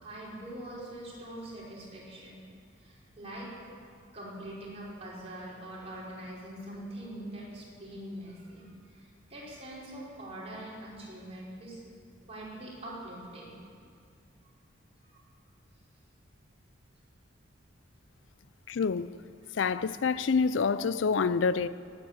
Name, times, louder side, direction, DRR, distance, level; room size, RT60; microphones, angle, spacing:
voice 1, 0.0-2.4 2.8-3.5 4.1-11.8 12.3-13.6 15.1-15.2 19.4-19.6, right 1 dB, 30° right, 5.1 m, -43 dB
voice 2, 18.7-19.1 19.5-21.7, left 5 dB, 70° left, 0.4 m, -27 dB
18.5 x 9.0 x 8.8 m
head